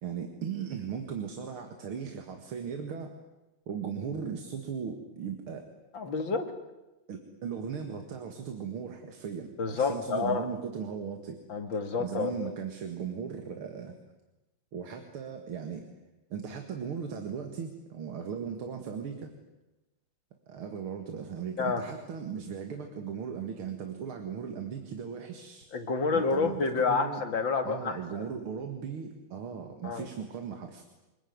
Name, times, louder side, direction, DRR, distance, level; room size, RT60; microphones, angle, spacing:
voice 1, 0.0-3.2 3.7-5.7 7.1-11.4 12.0-13.9 14.7-15.9 16.3-19.3 20.5-25.6 26.1-27.2 27.6-30.8, right 7 dB, 90° right, 5 dB, 2.7 m, -37 dB
voice 2, 5.9-6.5 9.6-10.5 11.5-12.6 21.6-21.8 25.7-28.2 29.8-30.1, left 4 dB, 65° left, 6 dB, 2.9 m, -29 dB
25.5 x 21.0 x 9.5 m, 1.0 s
omnidirectional pair, 2.3 m